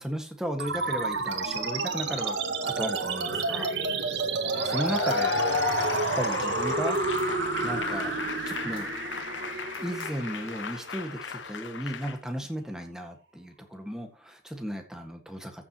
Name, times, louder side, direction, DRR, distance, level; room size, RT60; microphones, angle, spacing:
voice 1, 0.0-3.8 4.6-5.4 6.2-7.0 7.6-8.2 8.5-8.9 9.8-15.7, equal, 5° right, 4 dB, 1.6 m, -35 dB
sound 1, 0.6-11.5, right 3 dB, 80° right, 1.9 m, -30 dB
Cheering / Applause / Crowd, 4.5-12.2, left 5 dB, 90° left, 1.0 m, -34 dB
sound 2, 4.9-5.3 5.7-6.1 6.9-7.3 8.5-8.9 9.7-10.2, left 6 dB, 50° left, 3.4 m, -53 dB
14.5 x 7.2 x 3.0 m, 0.31 s
head